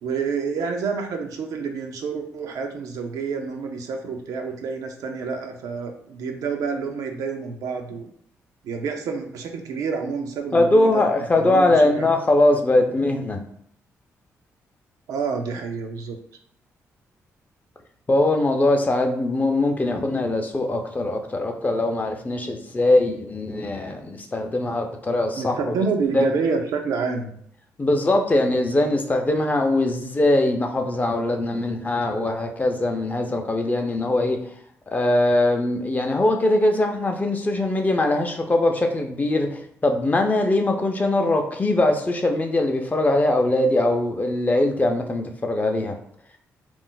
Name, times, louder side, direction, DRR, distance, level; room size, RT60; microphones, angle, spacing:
voice 1, 0.0-8.1 8.6-11.0 11.4-12.1 15.1-16.2 25.4-27.4, right 5 dB, 80° right, 3 dB, 0.5 m, -28 dB
voice 2, 10.5-13.4 18.1-25.7 26.1-26.3 27.8-34.4 34.9-45.9, left 2 dB, 25° left, 3 dB, 0.6 m, -21 dB
2.4 x 2.0 x 3.8 m, 0.64 s
supercardioid pair, 65°, 6 cm